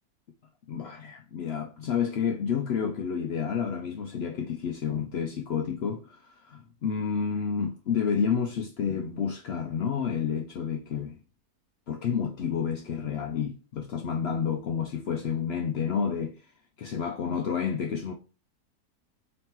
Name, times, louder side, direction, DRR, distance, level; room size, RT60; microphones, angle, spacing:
voice 1, 0.7-11.2 11.9-16.4 16.8-18.1, left 7 dB, 75° left, 0.5 m, -30 dB
4.0 x 3.4 x 2.9 m
omnidirectional pair, 1.7 m